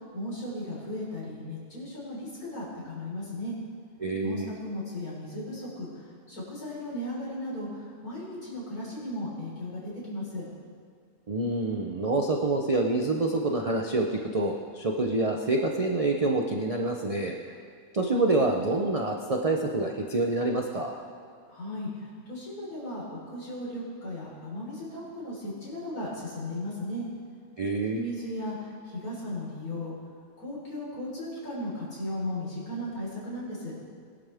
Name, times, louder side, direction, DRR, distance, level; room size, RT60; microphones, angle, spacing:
voice 1, 0.1-3.5 4.2-5.9 6.3-7.7 8.0-10.4 21.5-21.9 22.3-27.0 27.9-28.5 28.9-29.9 30.4-33.7, left 1 dB, 80° left, -7 dB, 5.0 m, -36 dB
voice 2, 4.0-4.5 11.3-17.4 17.9-21.0 27.6-28.0, right 2 dB, 35° right, 1 dB, 0.6 m, -27 dB
21.0 x 11.0 x 3.5 m, 2.2 s
omnidirectional pair, 1.5 m